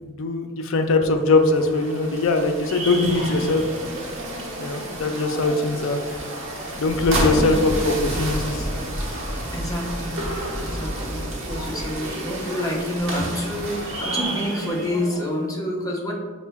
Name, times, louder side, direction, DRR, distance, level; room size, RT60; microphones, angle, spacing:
voice 1, 0.0-3.6 4.6-6.0 6.8-8.7, left 3 dB, 65° left, 5 dB, 0.4 m, -21 dB
sound 1, 1.2-15.3, right 1 dB, 65° right, 0.9 m, -31 dB
voice 2, 3.1-3.5 4.6-4.7 7.3-7.6 9.5-10.3 10.6-16.1, left 1 dB, 15° left, -2 dB, 0.7 m, -28 dB
sound 2, 6.9-11.9, equal, ahead, 1.0 m, -32 dB
5.3 x 2.1 x 3.4 m, 1.5 s
head